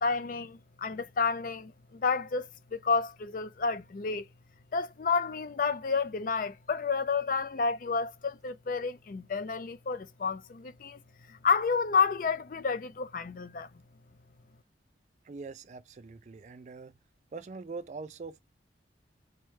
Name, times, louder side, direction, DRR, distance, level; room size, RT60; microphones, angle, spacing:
voice 1, 0.0-4.3 4.7-11.0 11.3-13.7, left 5 dB, 45° left, 0.4 m, -30 dB
voice 2, 15.2-16.9 17.3-18.4, right 4 dB, 40° right, 0.3 m, -43 dB
4.3 x 2.2 x 3.2 m
head